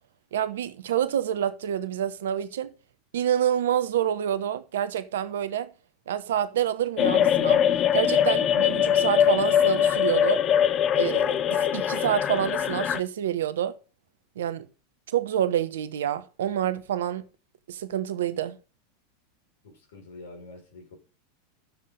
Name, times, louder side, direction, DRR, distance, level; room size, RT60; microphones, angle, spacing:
voice 1, 0.3-2.7 3.1-5.7 6.1-7.6 7.9-10.4 11.0-13.8 14.4-14.7 15.1-17.3 17.7-18.6, right 10 dB, 70° right, 1.0 m, -27 dB
sound 1, 7.0-13.0, left 9 dB, 35° left, 1.0 m, -22 dB
voice 2, 19.6-21.0, left 2 dB, 70° left, 6.0 m, -46 dB
12.0 x 7.5 x 5.4 m
figure-of-eight pair, 90°, 0 cm